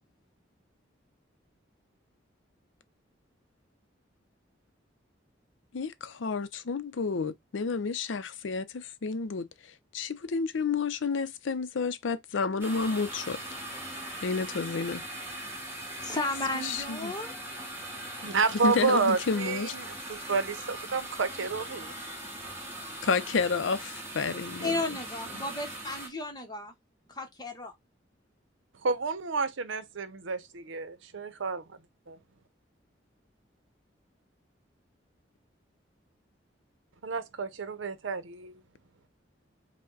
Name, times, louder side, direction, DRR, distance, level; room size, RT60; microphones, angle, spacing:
voice 1, 5.7-9.5 9.9-13.4 14.2-15.0 16.6-17.1 18.6-19.7 23.0-24.8 25.3-25.5, left 4 dB, 85° left, 0.5 m, -30 dB
sound 1, 12.6-26.1, right 1 dB, 10° right, 1.2 m, -40 dB
voice 2, 16.0-17.3 24.6-26.7 27.1-27.7, left 2 dB, 20° left, 0.9 m, -33 dB
voice 3, 18.2-21.9 28.8-31.6 32.1-32.2 37.0-38.6, right 4 dB, 85° right, 0.7 m, -30 dB
5.0 x 2.2 x 3.8 m
head